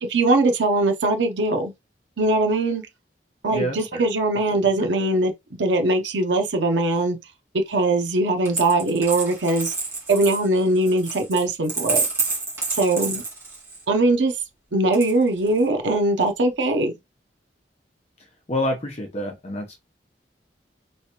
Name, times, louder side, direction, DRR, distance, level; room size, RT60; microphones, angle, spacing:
voice 1, 0.0-1.7 2.2-2.8 3.4-5.3 5.6-7.2 7.7-9.7 10.1-12.0 12.7-13.2 13.9-14.3 14.7-16.9, right 2 dB, 90° right, 0.7 m, -21 dB
voice 2, 3.5-4.0 4.8-4.9 13.0-13.2 18.5-19.8, equal, 35° left, 0.8 m, -28 dB
Coin (dropping), 8.4-13.8 14.9-15.6, right 4 dB, 15° right, 1.7 m, -28 dB
3.2 x 3.2 x 2.9 m
head